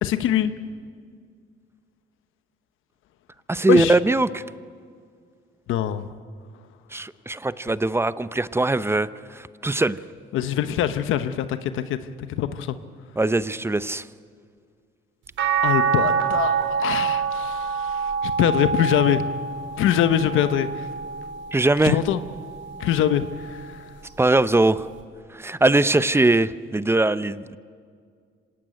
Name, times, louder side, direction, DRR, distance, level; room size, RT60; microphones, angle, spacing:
voice 1, 0.0-0.5 3.7-3.9 5.7-6.1 10.3-12.8 15.6-19.3 19.8-20.9 21.8-22.2 22.8-23.8, left 10 dB, 85° left, 11 dB, 1.0 m, -23 dB
voice 2, 3.5-4.4 6.9-10.0 13.2-14.1 21.5-22.0 24.2-24.9 25.3-27.6, right 2 dB, 10° right, 15 dB, 0.7 m, -21 dB
sound 1, 15.4-21.7 22.2-23.6 25.0-25.1, right 6 dB, 70° right, 3.8 m, -26 dB
26.5 x 17.5 x 9.2 m, 2.1 s
cardioid pair, 90°, 20 cm